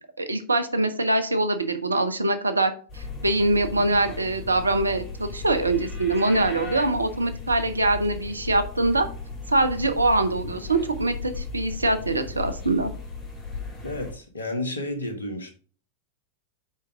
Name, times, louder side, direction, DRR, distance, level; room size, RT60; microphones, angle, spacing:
voice 1, 0.2-9.1 9.5-12.9, right 2 dB, 80° right, 9 dB, 0.7 m, -23 dB
sound 1, 2.9-14.1, left 4 dB, 25° left, 3.1 m, -36 dB
voice 2, 13.8-15.5, left 1 dB, 75° left, 5 dB, 1.4 m, -31 dB
5.5 x 5.1 x 4.6 m, 0.42 s
figure-of-eight pair, 90°, 0 cm